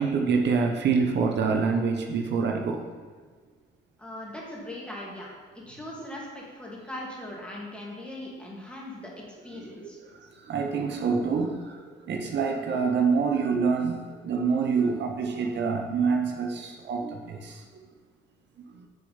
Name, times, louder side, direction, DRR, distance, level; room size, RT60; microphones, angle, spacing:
voice 1, 0.0-2.8 9.5-9.9 10.5-11.5 12.1-17.6, right 5 dB, 60° right, 2 dB, 1.0 m, -26 dB
voice 2, 4.0-9.1 9.4-10.0, left 1 dB, 5° left, -4 dB, 2.6 m, -40 dB
6.8 x 6.7 x 5.7 m, 1.4 s
cardioid pair, 90°, 20 cm